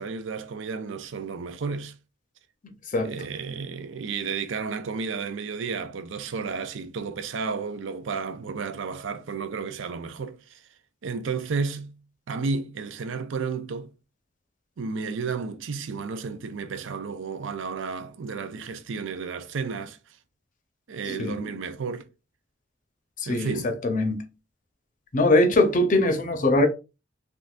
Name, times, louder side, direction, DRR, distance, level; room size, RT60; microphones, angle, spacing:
voice 1, 0.0-1.9 3.0-10.6 11.0-12.0 12.3-13.9 14.8-20.0 20.9-22.1 23.3-23.8, right 5 dB, 90° right, 0.5 m, -32 dB
voice 2, 21.0-21.4 23.3-23.5 23.8-24.3 25.1-26.7, left 2 dB, 45° left, 0.6 m, -21 dB
3.6 x 2.6 x 2.4 m
head